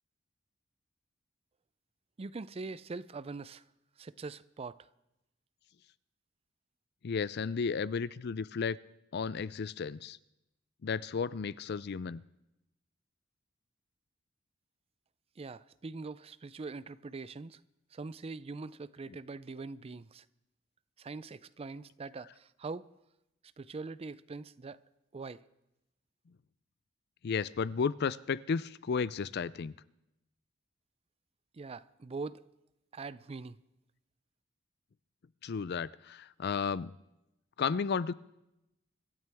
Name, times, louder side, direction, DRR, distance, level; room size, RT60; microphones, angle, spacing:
voice 1, 2.2-3.6 4.0-4.9 15.4-17.6 17.9-20.2 21.0-22.9 23.6-24.8 25.1-25.4 31.5-32.4 32.9-33.6, right 3 dB, 30° right, 0.4 m, -43 dB
voice 2, 7.0-8.8 9.1-10.2 10.8-12.2 27.2-29.7 35.4-36.9 37.6-38.1, left 5 dB, 55° left, 0.4 m, -33 dB
25.5 x 12.5 x 3.5 m
head